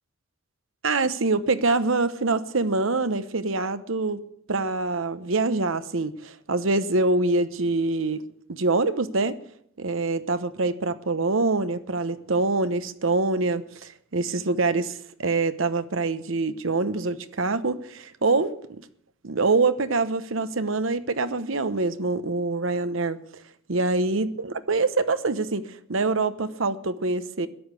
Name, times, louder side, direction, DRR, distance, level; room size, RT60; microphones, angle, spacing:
voice 1, 0.8-4.2 4.5-8.2 8.5-9.4 9.8-18.8 19.2-23.2 23.7-25.6 25.9-27.5, right 3 dB, 65° right, 12 dB, 1.0 m, -25 dB
13.5 x 11.0 x 8.3 m, 0.67 s
head